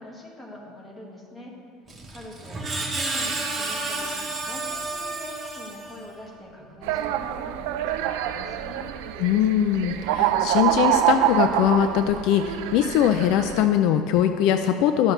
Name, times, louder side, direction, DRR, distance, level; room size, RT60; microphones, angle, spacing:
voice 1, 0.0-1.5 2.1-8.9, left 1 dB, 10° left, -3 dB, 1.5 m, -43 dB
Screech, 1.9-6.2, right 3 dB, 20° right, 1.0 m, -31 dB
sound 1, 6.8-13.6, right 11 dB, 80° right, 0.4 m, -26 dB
voice 2, 9.2-15.1, left 10 dB, 60° left, 8 dB, 0.4 m, -21 dB
12.5 x 6.2 x 3.2 m, 2.2 s
cardioid pair, 150°, 0 cm